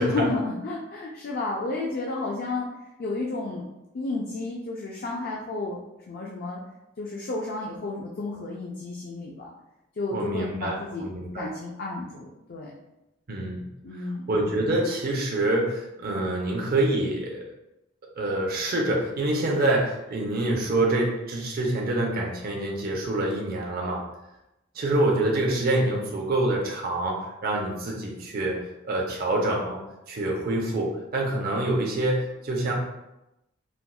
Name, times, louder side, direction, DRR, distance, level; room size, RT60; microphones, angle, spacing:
voice 1, 0.0-2.7 3.0-3.6 3.9-5.8 6.1-6.6 7.0-9.5 10.0-11.1 11.3-12.7 13.8-14.2, left 3 dB, 45° left, -2 dB, 0.4 m, -31 dB
voice 2, 10.1-11.5 13.3-13.6 14.0-17.4 18.2-24.0 24.7-28.6 28.8-29.8 30.1-32.7, right 1 dB, 45° right, -1 dB, 0.5 m, -26 dB
4.2 x 2.3 x 2.3 m, 0.92 s
head